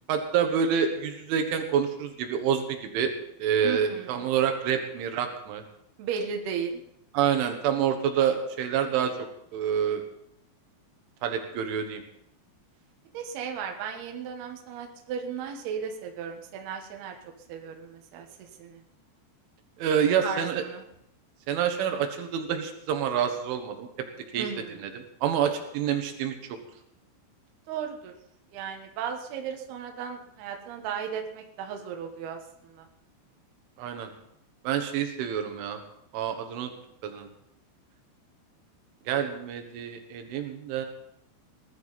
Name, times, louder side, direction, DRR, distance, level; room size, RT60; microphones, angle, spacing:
voice 1, 0.1-3.1 3.4-5.6 7.2-9.1 9.5-10.0 11.2-12.0 19.8-20.6 21.5-23.9 24.3-24.5 24.8-26.3 33.8-34.1 34.7-35.8 36.1-36.7 37.0-37.3 39.1-40.9, right 8 dB, 80° right, 6 dB, 3.7 m, -27 dB
voice 2, 3.6-4.3 6.0-6.8 13.1-17.1 17.5-18.8 20.2-20.8 24.3-24.8 27.7-28.1 28.5-32.9, right 7 dB, 65° right, 3 dB, 3.1 m, -35 dB
19.5 x 12.0 x 4.1 m, 0.77 s
omnidirectional pair, 5.5 m